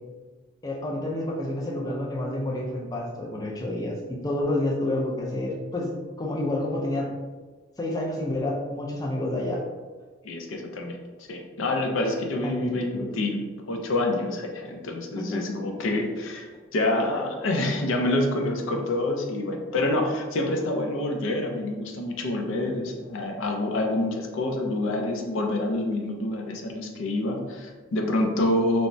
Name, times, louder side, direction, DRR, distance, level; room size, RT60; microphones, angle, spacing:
voice 1, 0.6-5.9 6.2-7.1 7.8-9.6 12.4-13.1 15.2-15.4, left 1 dB, 20° left, -2 dB, 0.4 m, -29 dB
voice 2, 10.2-28.9, left 1 dB, 80° left, 2 dB, 0.4 m, -27 dB
3.2 x 2.0 x 2.5 m, 1.3 s
head